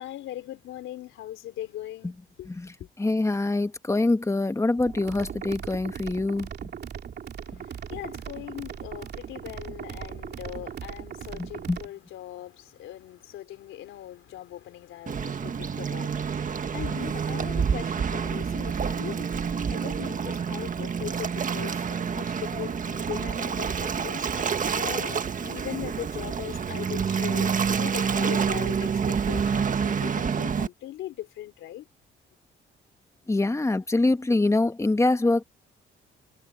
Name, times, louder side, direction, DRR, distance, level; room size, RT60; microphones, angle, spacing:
voice 1, 0.0-2.5 7.4-31.9, left 13 dB, 85° left, 3.4 m, -40 dB
voice 2, 3.0-6.7 11.4-11.8 33.3-35.4, left 2 dB, 15° left, 1.3 m, -25 dB
sound 1, 4.9-11.9, right 8 dB, 55° right, 2.4 m, -39 dB
Waves surf, 15.1-30.7, right 6 dB, 40° right, 1.6 m, -28 dB
cardioid pair, 90°, 20 cm